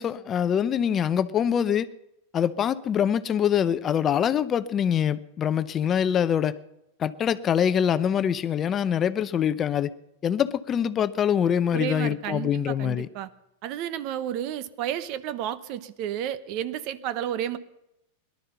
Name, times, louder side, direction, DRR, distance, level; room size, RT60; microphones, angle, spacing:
voice 1, 0.0-1.9 2.3-6.6 7.0-9.9 10.2-13.1, left 8 dB, 30° left, 0.6 m, -24 dB
voice 2, 11.7-13.3 13.6-17.6, right 10 dB, 50° right, 0.9 m, -31 dB
18.0 x 12.0 x 5.6 m
hypercardioid pair, 115°, 0 cm